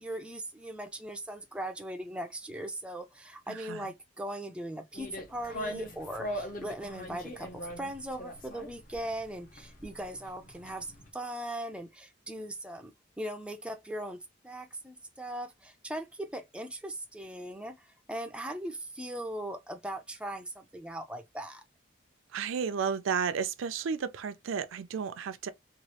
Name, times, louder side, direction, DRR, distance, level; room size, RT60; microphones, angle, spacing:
voice 1, 0.0-21.6, right 1 dB, 5° right, 0.3 m, -39 dB
voice 2, 3.5-3.9 22.3-25.5, right 6 dB, 85° right, 0.4 m, -33 dB
sound 1, 4.9-11.1, equal, 40° left, 0.7 m, -41 dB
3.0 x 2.3 x 2.8 m
head